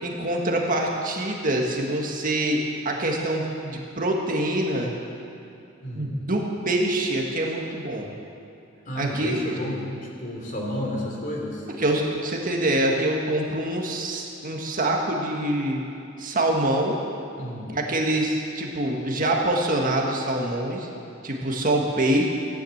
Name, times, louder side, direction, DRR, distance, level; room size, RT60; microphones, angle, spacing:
voice 1, 0.0-4.9 6.0-8.1 9.0-9.4 11.8-15.8 16.2-17.0 17.7-20.9 21.2-22.3, right 1 dB, 45° right, 0 dB, 1.8 m, -25 dB
voice 2, 5.8-6.1 8.8-9.9 10.2-11.7 17.3-17.7, left 1 dB, 45° left, -2 dB, 3.4 m, -31 dB
16.0 x 10.5 x 8.0 m, 2.6 s
head